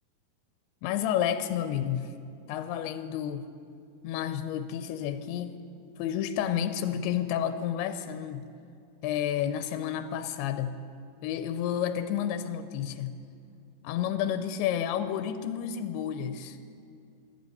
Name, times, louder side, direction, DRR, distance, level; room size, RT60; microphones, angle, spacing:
voice 1, 0.8-2.1 2.5-3.5 4.0-5.6 6.0-8.5 9.0-10.8 11.2-13.2 13.8-16.6, left 10 dB, 90° left, 10 dB, 2.6 m, -30 dB
17.0 x 12.0 x 5.4 m, 2.4 s
omnidirectional pair, 4.5 m